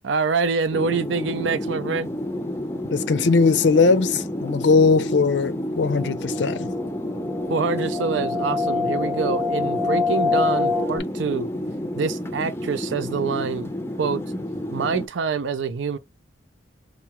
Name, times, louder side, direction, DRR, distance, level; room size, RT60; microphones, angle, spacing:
voice 1, 0.0-2.1 7.5-11.5 11.9-13.7 14.0-14.2 14.7-16.0, right 5 dB, 80° right, 0.5 m, -25 dB
sound 1, 0.7-15.1, left 1 dB, 15° left, 0.5 m, -30 dB
voice 2, 2.9-6.7, left 4 dB, 70° left, 0.5 m, -19 dB
sound 2, 5.8-11.0, left 3 dB, 10° right, 0.8 m, -26 dB
4.6 x 2.2 x 2.9 m
head